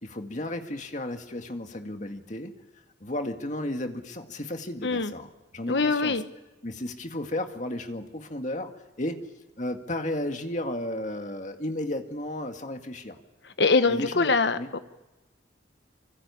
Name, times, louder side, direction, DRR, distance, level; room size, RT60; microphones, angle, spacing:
voice 1, 0.0-2.5 3.0-6.2 6.6-8.7 9.0-9.2 9.6-13.2 13.9-14.7, left 1 dB, 45° left, 5 dB, 2.0 m, -33 dB
voice 2, 4.8-5.1 5.7-6.2 13.6-14.8, left 4 dB, 75° left, 10 dB, 1.2 m, -23 dB
26.0 x 25.0 x 7.1 m, 1.1 s
head